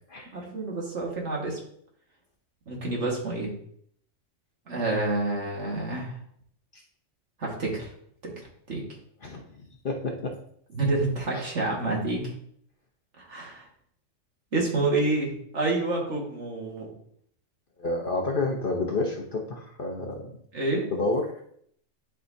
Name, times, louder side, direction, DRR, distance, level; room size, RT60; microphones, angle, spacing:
voice 1, 0.3-1.6 2.7-3.5 4.7-6.2 7.4-7.9 8.2-8.8 10.7-12.3 13.2-13.7 14.5-16.9 20.5-20.9, right 2 dB, 60° right, -2 dB, 2.1 m, -28 dB
voice 2, 9.8-10.3 11.3-11.4 17.8-20.3 20.9-21.3, left 2 dB, 45° left, 1 dB, 1.0 m, -29 dB
10.5 x 4.9 x 2.7 m, 0.66 s
omnidirectional pair, 1.4 m